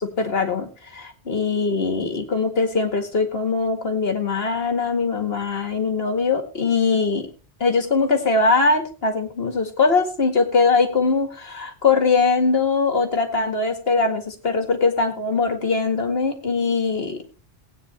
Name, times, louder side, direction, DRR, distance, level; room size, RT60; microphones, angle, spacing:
voice 1, 0.0-7.3 7.6-17.2, left 4 dB, 65° left, 6 dB, 2.1 m, -21 dB
18.5 x 9.1 x 3.3 m, 0.36 s
omnidirectional pair, 1.1 m